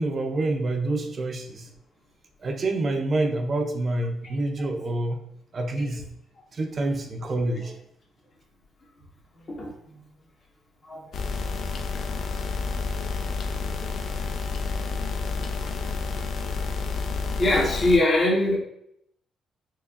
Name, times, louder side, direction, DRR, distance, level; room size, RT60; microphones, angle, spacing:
voice 1, 0.0-1.7 2.4-5.3 5.5-6.0 6.5-7.7, right 2 dB, 45° right, 4 dB, 0.5 m, -27 dB
voice 2, 9.4-10.0 10.9-11.0 17.4-18.6, left 1 dB, 45° left, -3 dB, 1.4 m, -22 dB
sound 1, 11.1-18.0, left 4 dB, 65° left, 0.5 m, -30 dB
4.5 x 2.9 x 2.5 m, 0.74 s
cardioid pair, 90°, 0 cm